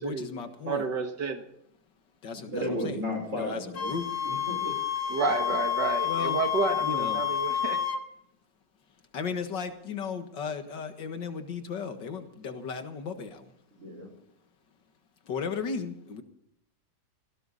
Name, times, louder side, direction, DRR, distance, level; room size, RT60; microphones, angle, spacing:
voice 1, 0.0-0.9 2.2-3.0 3.3-4.1 6.0-6.4 6.8-7.2 9.1-13.5 15.3-16.2, left 5 dB, 85° left, 8 dB, 2.3 m, -35 dB
voice 2, 0.7-1.4 5.1-7.8, right 4 dB, 75° right, 6 dB, 2.2 m, -30 dB
voice 3, 2.5-4.7 5.2-5.3 13.8-14.1, left 1 dB, 45° right, 3 dB, 5.7 m, -34 dB
Wind instrument woodwind instrument, 3.7-8.0, left 10 dB, 60° left, 2.1 m, -29 dB
18.0 x 17.5 x 4.1 m, 0.73 s
omnidirectional pair, 1.9 m